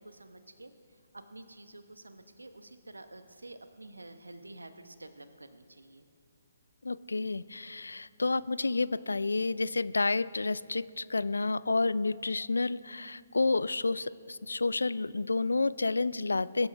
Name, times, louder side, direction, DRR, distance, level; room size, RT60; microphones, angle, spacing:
voice 1, 0.0-6.1, right 2 dB, 80° right, 10 dB, 0.9 m, -50 dB
voice 2, 6.8-16.7, left 3 dB, 75° left, 19 dB, 0.3 m, -30 dB
22.0 x 12.0 x 3.3 m, 2.3 s
figure-of-eight pair, 135°, 0 cm